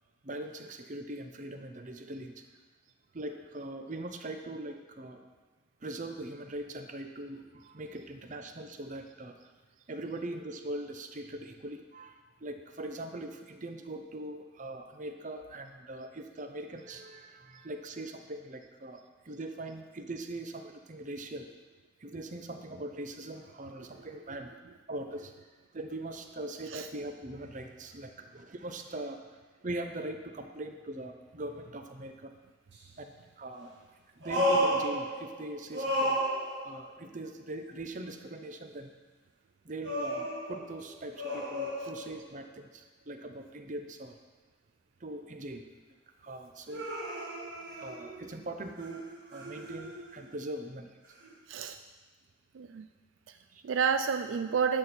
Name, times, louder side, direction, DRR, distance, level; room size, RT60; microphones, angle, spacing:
voice 1, 0.2-2.4 3.1-5.2 5.8-9.4 9.9-21.5 22.0-24.5 24.9-25.3 25.7-29.2 29.6-32.3 33.0-33.7 34.2-36.2 36.6-38.9 39.6-44.2 45.0-45.7 46.2-46.9 47.7-50.9 53.5-53.6, right 1 dB, 40° right, 5 dB, 0.7 m, -41 dB
sound 1, 32.7-32.8 34.2-35.4 35.7-36.9 39.8-42.4 46.7-48.4 48.8-50.2 51.2-51.3, equal, 55° right, 1.9 m, -33 dB
voice 2, 51.5-51.8 52.5-52.9 53.3-53.4 53.6-54.8, right 6 dB, 70° right, 8 dB, 0.4 m, -30 dB
11.0 x 4.5 x 6.7 m, 1.3 s
head